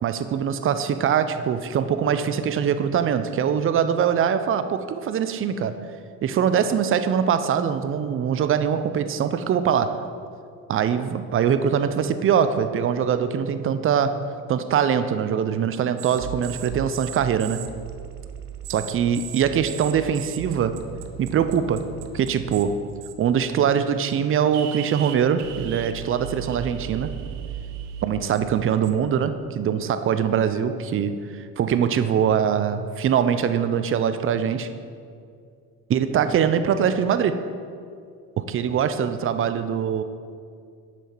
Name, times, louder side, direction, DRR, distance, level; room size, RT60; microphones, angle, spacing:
voice 1, 0.0-5.7 6.2-10.0 10.7-14.2 14.5-17.6 18.7-20.8 21.2-21.8 22.1-22.8 23.2-27.1 28.0-34.7 35.9-37.4 38.4-40.0, right 8 dB, 30° right, 11 dB, 0.5 m, -23 dB
sound 1, 16.0-22.6 23.0-23.4 24.0-24.1 24.5-29.1, right 10 dB, 60° right, 0.8 m, -37 dB
6.8 x 5.8 x 4.5 m, 2.3 s
hypercardioid pair, 65°, 46 cm